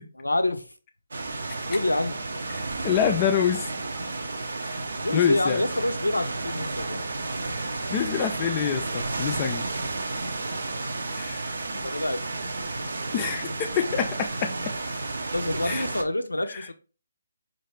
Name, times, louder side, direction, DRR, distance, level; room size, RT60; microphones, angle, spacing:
voice 1, 0.1-0.7 1.7-2.2 5.0-7.0 11.6-12.2 15.3-16.7, left 1 dB, 90° left, 0.5 m, -27 dB
sound 1, 1.1-16.0, right 3 dB, 65° right, 0.6 m, -32 dB
voice 2, 2.8-3.7 4.7-4.8 5.1-5.6 7.9-9.7 11.1-11.5 13.1-14.5 15.6-15.9 16.5-16.7, left 8 dB, 25° left, 0.3 m, -26 dB
4.5 x 2.5 x 3.1 m
figure-of-eight pair, 145°, 0 cm